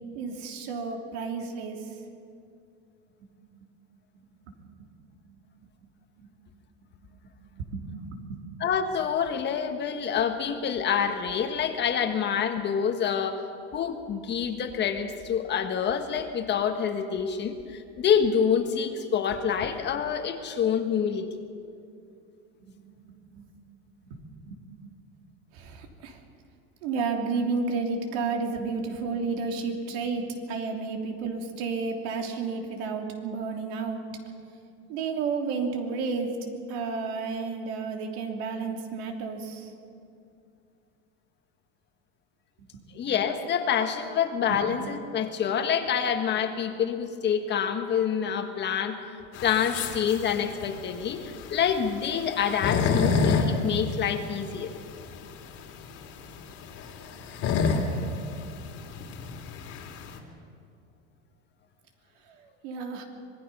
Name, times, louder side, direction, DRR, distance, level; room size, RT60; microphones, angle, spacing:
voice 1, 0.1-1.9 4.1-4.9 5.3-5.4 5.8-5.9 6.2-6.3 7.6-8.4 22.6-23.5 24.1-24.6 25.5-26.2 26.8-34.0 34.9-36.4 36.7-39.7 42.6-42.8 44.5-44.6 57.5-57.6 62.3-63.0, right 4 dB, 70° right, 3 dB, 3.3 m, -32 dB
voice 2, 8.6-13.4 13.7-21.3 42.9-49.1 49.4-54.7, left 7 dB, 35° left, 6 dB, 1.6 m, -27 dB
sound 1, 49.3-60.2, left 5 dB, 50° left, 2.7 m, -29 dB
26.0 x 20.0 x 5.6 m, 2.5 s
supercardioid pair, 135°, 33 cm